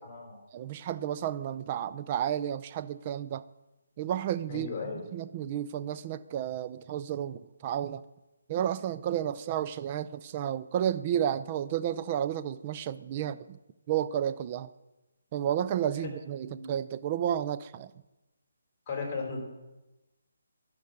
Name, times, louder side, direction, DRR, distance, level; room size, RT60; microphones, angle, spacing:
voice 1, 0.0-0.4 4.5-5.1 13.1-13.3 16.4-16.7 18.9-19.4, left 4 dB, 25° left, 1 dB, 3.6 m, -37 dB
voice 2, 0.5-3.4 4.0-8.0 8.5-13.6 13.9-14.7 15.3-17.9, right 10 dB, 30° right, 12 dB, 0.5 m, -32 dB
12.5 x 5.3 x 8.7 m, 1.0 s
figure-of-eight pair, 155°, 0 cm